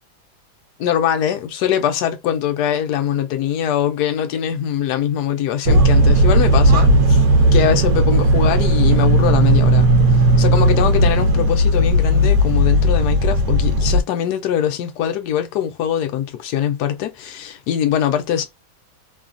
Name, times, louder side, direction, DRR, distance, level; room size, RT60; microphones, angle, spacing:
voice 1, 0.8-7.3 7.5-9.9 10.4-18.5, left 9 dB, 70° left, 1.0 m, -22 dB
sound 1, 5.7-14.0, right 1 dB, 65° right, 0.9 m, -15 dB
3.1 x 2.3 x 2.4 m
omnidirectional pair, 2.1 m